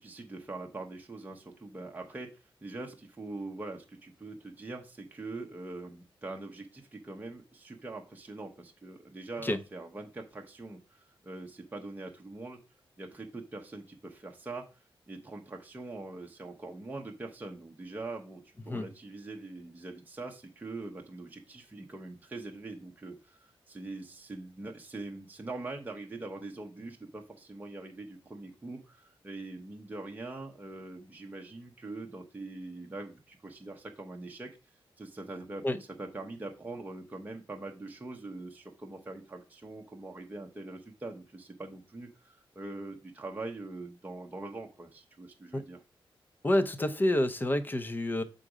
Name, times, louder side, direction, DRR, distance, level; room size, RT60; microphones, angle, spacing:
voice 1, 0.0-2.3 2.6-12.6 13.0-14.7 15.1-34.5 35.0-35.6 36.0-45.8, right 2 dB, 20° right, 1 dB, 0.9 m, -43 dB
voice 2, 46.4-48.2, left 1 dB, 20° left, 10 dB, 0.6 m, -28 dB
7.5 x 3.9 x 4.9 m, 0.32 s
wide cardioid pair, 165°, 9 cm